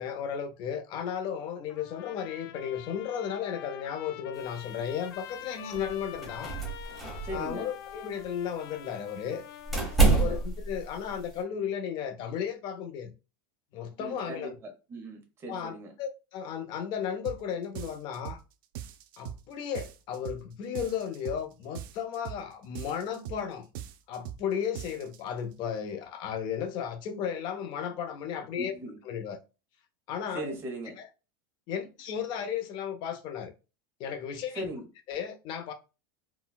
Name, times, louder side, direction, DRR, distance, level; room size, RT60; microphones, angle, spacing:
voice 1, 0.0-6.5 7.3-9.4 10.1-13.1 13.7-14.6 15.5-18.4 19.2-23.7 24.1-28.7 29.0-29.4 30.1-30.6 31.0-31.1 31.7-33.5 34.0-34.7 35.1-35.7, left 8 dB, 40° left, 0.6 m, -34 dB
Trumpet, 1.7-10.3, left 12 dB, 85° left, 0.4 m, -46 dB
sound 1, 4.4-11.4, right 3 dB, ahead, 1.1 m, -30 dB
voice 2, 7.2-7.7 9.9-10.4 14.0-15.9 28.6-29.0 30.3-31.0 34.6-34.8, right 1 dB, 20° right, 0.7 m, -38 dB
sound 2, 17.2-17.4 17.7-18.4 18.7-19.4 19.7-20.4 20.7-21.4 21.7-22.4 22.7-23.4 23.7-24.4 24.7-25.2, right 11 dB, 65° right, 0.4 m, -41 dB
3.8 x 2.2 x 2.3 m
supercardioid pair, 160°, 12 cm